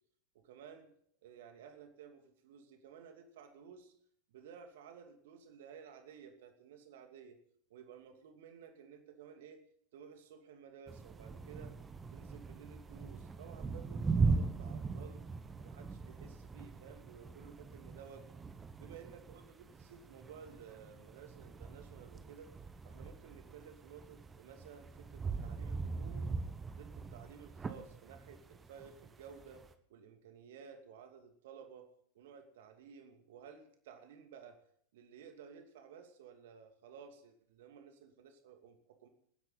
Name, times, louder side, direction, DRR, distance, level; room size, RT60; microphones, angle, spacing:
voice 1, 0.3-0.9 1.2-3.9 4.3-7.4 7.7-9.6 9.9-11.8 12.1-15.3 15.6-18.3 18.8-22.5 22.8-26.3 26.7-31.9 32.1-34.6 34.9-39.1, right 7 dB, 55° right, 5 dB, 2.5 m, -55 dB
sound 1, 10.9-29.7, right 4 dB, 15° right, 1.2 m, -40 dB
26.5 x 10.5 x 4.1 m, 0.64 s
figure-of-eight pair, 90°, 0 cm